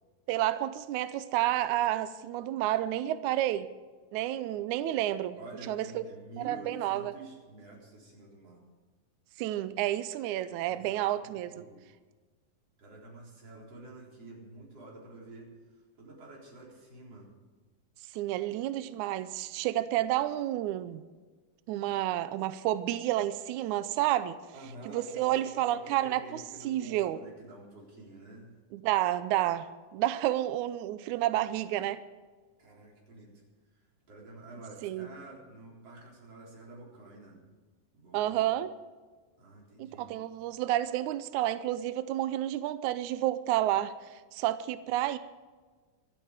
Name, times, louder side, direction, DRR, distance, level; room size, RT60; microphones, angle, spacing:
voice 1, 0.3-3.7 4.1-5.4 5.7-6.0 6.4-7.1 9.4-11.6 18.1-21.0 21.7-24.4 24.9-26.2 26.6-27.2 28.7-32.0 34.8-35.1 38.1-38.7 39.8-44.0 44.3-45.2, right 13 dB, 90° right, 13 dB, 1.7 m, -30 dB
voice 2, 5.4-8.6 10.6-11.9 12.8-17.3 21.8-22.0 24.5-28.6 32.6-33.4 33.7-37.4 37.9-38.4 39.4-40.1, right 2 dB, 45° right, -3 dB, 4.9 m, -49 dB
25.0 x 8.8 x 5.0 m, 1.4 s
omnidirectional pair, 4.1 m